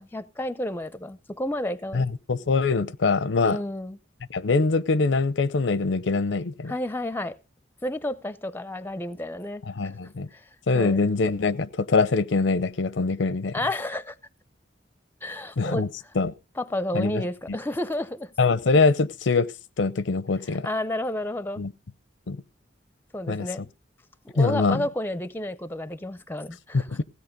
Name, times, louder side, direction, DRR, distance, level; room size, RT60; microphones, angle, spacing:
voice 1, 0.0-2.1 3.4-4.0 6.7-7.4 7.8-9.9 10.3-10.4 10.7-11.0 13.5-14.2 15.2-15.9 16.6-18.3 20.6-21.6 23.1-23.7 24.2-27.0, left 1 dB, 10° left, 0.5 m, -31 dB
voice 2, 1.9-3.6 4.3-6.7 9.7-10.3 10.7-13.5 15.6-15.9 16.2-16.3 16.9-17.2 18.4-19.5 19.8-20.7 21.6-21.7 22.3-22.4 23.3-23.5 24.4-24.8 26.9-27.0, left 3 dB, 85° left, 0.6 m, -23 dB
16.5 x 8.3 x 5.2 m
head